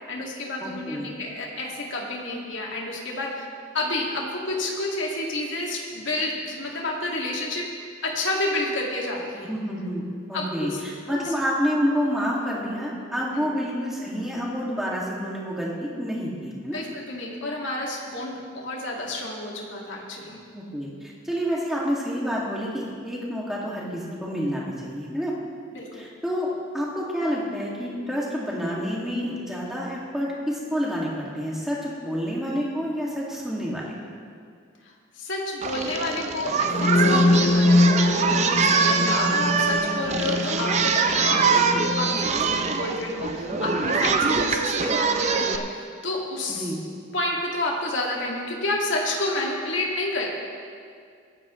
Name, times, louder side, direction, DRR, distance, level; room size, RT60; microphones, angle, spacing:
voice 1, 0.1-3.5 3.7-7.6 8.0-9.5 10.3-10.8 11.1-11.3 13.3-13.5 16.7-20.4 25.7-26.1 34.8-46.7 47.1-50.3, left 2 dB, 70° left, -2 dB, 2.2 m, -30 dB
voice 2, 0.6-1.1 9.5-16.8 20.5-25.3 25.9-26.5 26.7-33.9 43.5-43.7 46.5-46.8, equal, ahead, -5 dB, 2.2 m, -28 dB
Singing, 35.6-45.6, right 5 dB, 35° right, 0.6 m, -24 dB
sound 1, 36.6-44.5, left 2 dB, 40° left, 0.6 m, -24 dB
23.0 x 9.1 x 3.2 m, 2.2 s
head